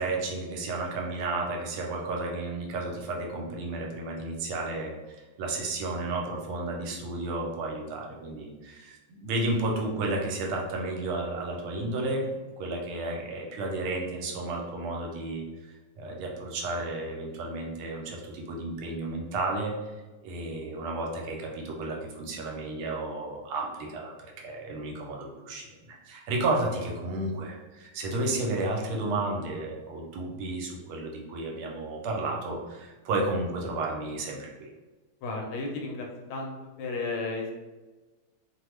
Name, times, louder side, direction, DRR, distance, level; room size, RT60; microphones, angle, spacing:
voice 1, 0.0-19.7 20.2-34.7, right 2 dB, 85° right, 0 dB, 1.5 m, -32 dB
voice 2, 35.2-37.5, left 3 dB, 80° left, 1 dB, 1.4 m, -34 dB
3.3 x 2.2 x 3.1 m, 1.2 s
omnidirectional pair, 2.3 m